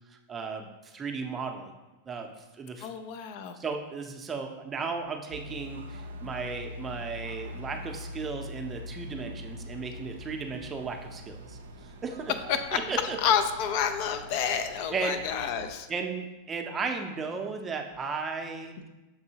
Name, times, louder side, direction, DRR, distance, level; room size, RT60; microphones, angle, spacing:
voice 1, 0.1-1.8 2.1-2.9 3.5-12.3 12.7-13.2 14.9-15.2 15.9-18.9, right 4 dB, 25° right, 4 dB, 0.5 m, -35 dB
voice 2, 2.8-3.6 12.5-12.8 13.2-15.9, left 8 dB, 55° left, 8 dB, 0.4 m, -29 dB
sound 1, 5.3-15.7, left 1 dB, 85° right, 0.4 m, -43 dB
6.7 x 2.7 x 2.8 m, 1.1 s
hypercardioid pair, 110°, 0 cm